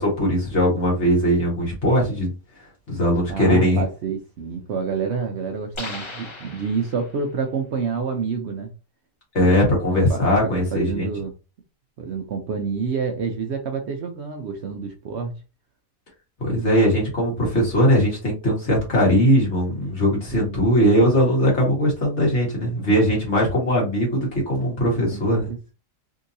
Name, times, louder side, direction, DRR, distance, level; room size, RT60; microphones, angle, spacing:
voice 1, 0.0-2.3 2.9-3.8 9.3-11.1 16.4-25.5, equal, 55° left, -2 dB, 1.9 m, -20 dB
voice 2, 3.3-8.7 9.4-9.6 10.1-11.3 12.0-15.3 19.8-20.7 24.9-25.7, right 5 dB, 60° right, 4 dB, 0.8 m, -28 dB
sound 1, 5.7-7.3, left 2 dB, 35° left, 0.5 m, -37 dB
3.7 x 2.7 x 2.6 m, 0.31 s
omnidirectional pair, 1.5 m